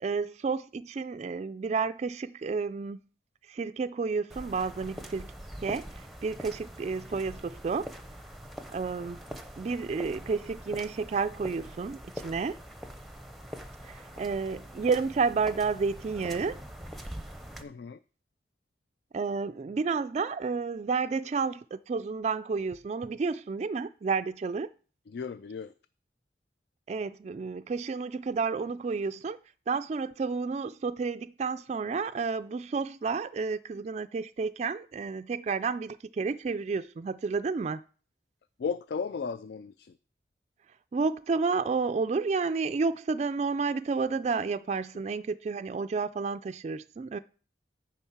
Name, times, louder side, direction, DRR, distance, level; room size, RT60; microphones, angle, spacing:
voice 1, 0.0-3.0 3.5-5.3 5.6-8.0 8.7-9.2 9.6-12.6 13.8-16.6 19.1-24.7 26.9-29.4 29.7-37.8 40.9-47.2, right 4 dB, 40° right, 0.3 m, -31 dB
sound 1, 4.3-17.6, equal, ahead, 0.7 m, -44 dB
voice 2, 17.6-18.0 25.1-25.7 38.6-39.9, left 5 dB, 65° left, 0.3 m, -35 dB
10.0 x 3.6 x 7.1 m
head